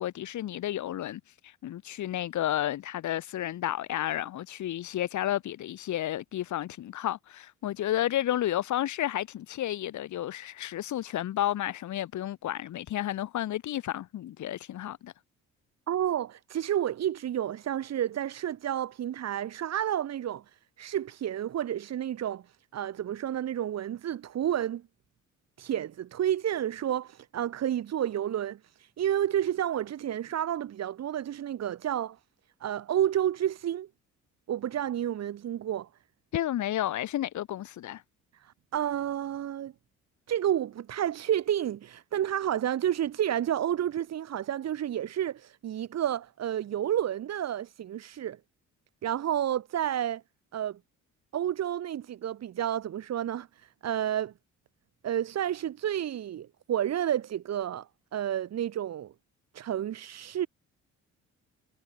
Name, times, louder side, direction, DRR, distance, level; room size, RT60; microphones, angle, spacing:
voice 1, 0.0-15.1 36.3-38.0, left 12 dB, 70° left, 1.8 m, -32 dB
voice 2, 15.9-24.8 25.6-32.2 32.6-33.9 34.5-35.9 38.4-39.7 40.3-48.4 49.0-50.2 50.5-50.8 51.3-54.3 55.0-59.1 59.5-60.5, right 10 dB, 60° right, 1.4 m, -30 dB
cardioid pair, 90°, 30 cm